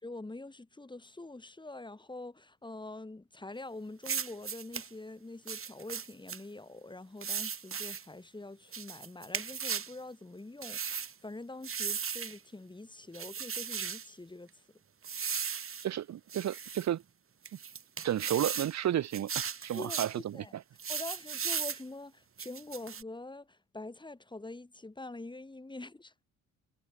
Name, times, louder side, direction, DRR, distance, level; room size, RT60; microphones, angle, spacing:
voice 1, 0.0-14.5 19.7-20.1 20.3-20.5 20.9-26.2, left 2 dB, 15° left, 5.0 m, -45 dB
sound 1, 4.0-4.9 5.5-6.4 7.2-8.0 8.7-9.9 10.6-11.1 11.6-12.4 13.1-14.1 15.0-15.9 16.3-16.9 17.4-18.7 19.1-20.2 20.8-21.8 22.4-23.0, right 7 dB, 45° right, 4.9 m, -36 dB
voice 2, 15.8-17.0 18.0-20.6, right 11 dB, 65° right, 1.6 m, -32 dB
cardioid pair, 90°, 30 cm